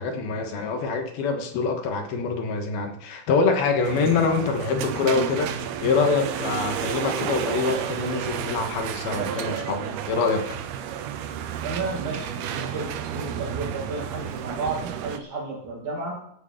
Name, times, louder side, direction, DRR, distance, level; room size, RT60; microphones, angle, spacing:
voice 1, 0.0-10.6, left 4 dB, 75° left, 3.2 m, -25 dB
sound 1, 3.8-15.2, right 9 dB, 80° right, 3.0 m, -31 dB
voice 2, 11.6-16.2, right 3 dB, 55° right, 3.5 m, -32 dB
16.5 x 8.2 x 6.5 m
omnidirectional pair, 4.6 m